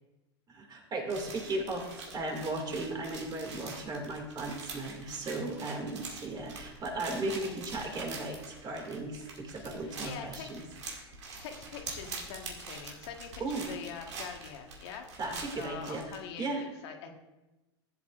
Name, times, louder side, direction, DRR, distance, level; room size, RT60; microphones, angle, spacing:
voice 1, 0.5-10.6 13.4-13.7 15.2-16.0 16.4-16.6, right 2 dB, 30° right, 2 dB, 2.3 m, -36 dB
sound 1, 1.1-16.2, right 3 dB, 85° right, 2.1 m, -45 dB
voice 2, 9.8-10.5 11.4-17.1, left 7 dB, 65° left, 4 dB, 1.4 m, -44 dB
14.5 x 8.1 x 2.5 m, 1.1 s
hypercardioid pair, 105°, 14 cm